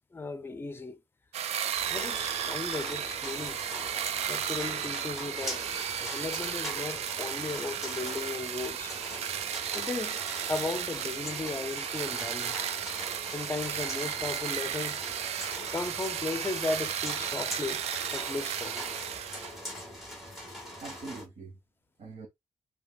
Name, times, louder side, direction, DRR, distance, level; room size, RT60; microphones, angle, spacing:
voice 1, 0.1-1.0 1.9-3.9 4.3-5.6 6.0-8.9 9.7-10.2 10.5-12.7 13.3-15.0 15.7-17.8 18.1-18.9, left 3 dB, 20° left, 0.5 m, -36 dB
sound 1, 1.3-19.6, right 9 dB, 85° right, 0.4 m, -34 dB
sound 2, 1.7-21.3, left 1 dB, ahead, 1.7 m, -42 dB
voice 2, 19.9-21.6 22.0-22.3, right 3 dB, 70° right, 1.4 m, -46 dB
5.3 x 2.8 x 2.3 m
cardioid pair, 120°, 11 cm